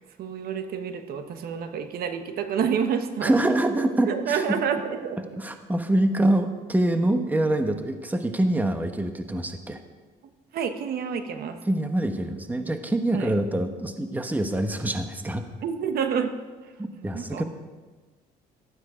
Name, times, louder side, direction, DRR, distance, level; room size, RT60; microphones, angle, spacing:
voice 1, 0.2-3.3 4.1-5.4 10.5-11.6 13.1-13.3 15.6-16.3 16.6-17.4, right 7 dB, 65° right, 8 dB, 1.2 m, -29 dB
voice 2, 3.2-4.4 5.4-9.8 11.7-15.4 16.8-17.4, right 1 dB, 10° right, 7 dB, 1.1 m, -25 dB
15.0 x 12.5 x 5.0 m, 1.3 s
cardioid pair, 110°, 17 cm